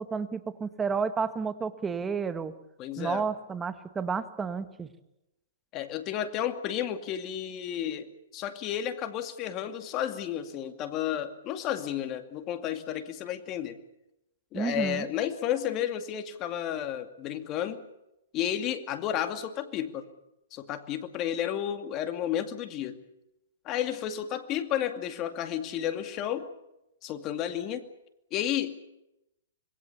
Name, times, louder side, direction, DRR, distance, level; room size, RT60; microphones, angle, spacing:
voice 1, 0.0-2.5 3.0-4.9 14.5-15.1, right 5 dB, 10° right, 11 dB, 1.5 m, -31 dB
voice 2, 2.8-3.3 5.7-13.8 14.5-17.8 18.3-20.1 20.5-23.0 23.6-26.5 27.0-27.9 28.3-28.7, left 10 dB, 30° left, 8 dB, 2.4 m, -32 dB
26.0 x 21.0 x 7.1 m, 0.87 s
hypercardioid pair, 145°, 0 cm